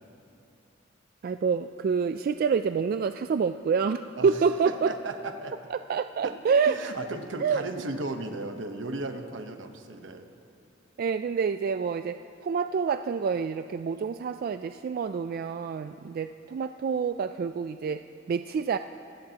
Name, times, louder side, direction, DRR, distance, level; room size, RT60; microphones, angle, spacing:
voice 1, 1.2-4.9 5.7-6.9 7.4-7.6 11.0-18.8, right 6 dB, 50° right, 10 dB, 0.3 m, -27 dB
voice 2, 4.7-5.5 6.2-6.3 6.6-10.3, right 2 dB, 80° right, 7 dB, 1.0 m, -35 dB
26.5 x 15.5 x 2.9 m, 2.9 s
head